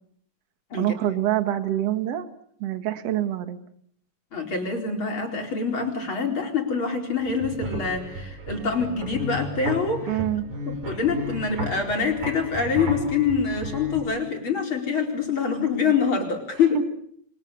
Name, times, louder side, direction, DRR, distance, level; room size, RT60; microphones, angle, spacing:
voice 1, 0.8-2.3 2.6-3.6 10.1-10.4 16.7-16.8, right 12 dB, 50° right, 9 dB, 2.2 m, -25 dB
voice 2, 4.3-10.2 10.7-16.8, left 5 dB, 35° left, 2 dB, 5.0 m, -25 dB
sound 1, 7.2-14.0, equal, 70° right, 8.5 m, -34 dB
29.0 x 23.5 x 6.9 m, 0.66 s
omnidirectional pair, 4.2 m